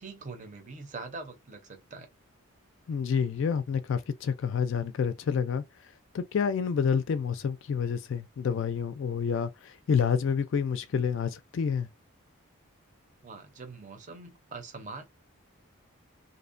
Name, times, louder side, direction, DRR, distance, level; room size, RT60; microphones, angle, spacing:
voice 1, 0.0-2.1 13.2-15.0, right 3 dB, 35° right, 0.6 m, -43 dB
voice 2, 2.9-5.6 6.1-11.9, left 6 dB, 55° left, 0.3 m, -28 dB
2.6 x 2.1 x 2.5 m
head